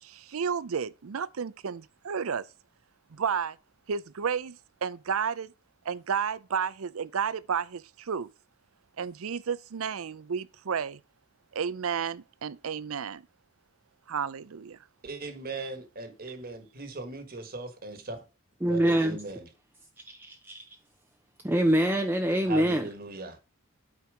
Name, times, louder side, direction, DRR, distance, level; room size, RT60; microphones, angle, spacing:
voice 1, 0.0-2.4 3.1-3.6 3.9-5.5 5.8-8.3 9.0-11.0 11.5-13.2 14.1-14.8, right 6 dB, 80° right, 0.5 m, -32 dB
voice 2, 15.0-18.2 18.6-19.5 22.5-23.4, right 2 dB, 45° right, 1.7 m, -38 dB
voice 3, 18.6-19.2 20.1-20.6 21.4-22.8, right 1 dB, 10° right, 0.6 m, -25 dB
8.6 x 4.7 x 5.0 m
head